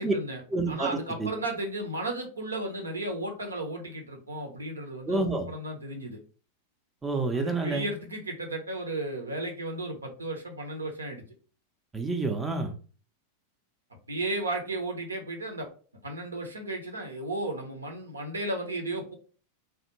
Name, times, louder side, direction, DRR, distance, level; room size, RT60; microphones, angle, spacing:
voice 1, 0.0-0.4 0.7-6.2 7.3-11.2 14.1-15.7 16.0-19.1, right 2 dB, 75° right, 3 dB, 0.7 m, -34 dB
voice 2, 0.5-1.3 5.1-5.5 7.0-7.9 11.9-12.7, right 3 dB, 15° right, 4 dB, 0.5 m, -28 dB
3.4 x 2.4 x 2.9 m, 0.39 s
figure-of-eight pair, 90°, 0 cm